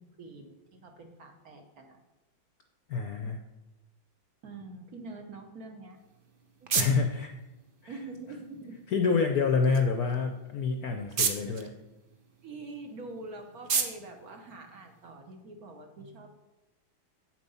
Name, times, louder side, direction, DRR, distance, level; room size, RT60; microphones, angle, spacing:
voice 1, 0.0-2.0 4.4-6.0 6.6-6.9 7.9-8.8 12.4-16.3, right 3 dB, 55° right, 4 dB, 1.3 m, -45 dB
voice 2, 2.9-3.4 6.7-7.3 7.8-7.9 8.9-11.7, left 5 dB, 65° left, 5 dB, 0.9 m, -27 dB
sound 1, 5.9-15.3, right 5 dB, 85° right, 0.4 m, -37 dB
8.2 x 7.6 x 5.5 m, 1.0 s
omnidirectional pair, 2.2 m